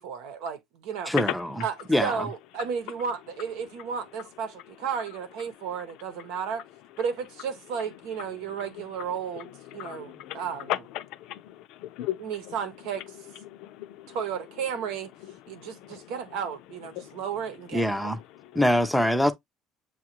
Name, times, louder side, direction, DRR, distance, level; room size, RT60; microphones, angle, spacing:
voice 1, 0.0-1.1 1.6-6.6 7.0-10.9 12.2-13.2 14.1-15.1 15.5-18.1, right 7 dB, 85° right, 1.0 m, -33 dB
voice 2, 1.1-1.6 1.9-2.3 17.7-18.2 18.5-19.3, left 1 dB, ahead, 0.5 m, -24 dB
voice 3, 9.8-10.4 10.7-12.2 13.5-14.2 15.5-16.0 17.0-17.2, left 14 dB, 75° left, 0.5 m, -36 dB
7.0 x 2.4 x 2.8 m
cardioid pair, 145°, 0 cm